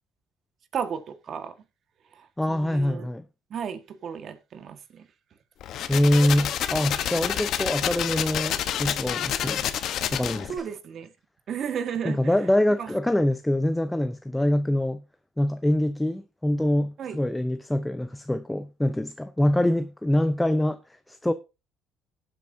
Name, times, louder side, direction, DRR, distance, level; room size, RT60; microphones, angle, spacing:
voice 1, 0.7-1.6 2.1-3.1 3.5-5.1 10.5-11.1 11.5-12.5 12.8-13.0 17.0-17.2, right 7 dB, 55° right, 1.6 m, -34 dB
voice 2, 2.4-3.2 5.9-9.6 10.1-10.5 12.0-15.0 15.4-20.8 21.1-21.3, left 1 dB, 5° left, 0.7 m, -24 dB
sound 1, 5.6-10.6, left 10 dB, 65° left, 1.0 m, -28 dB
18.0 x 7.7 x 2.7 m
supercardioid pair, 90°, 0 cm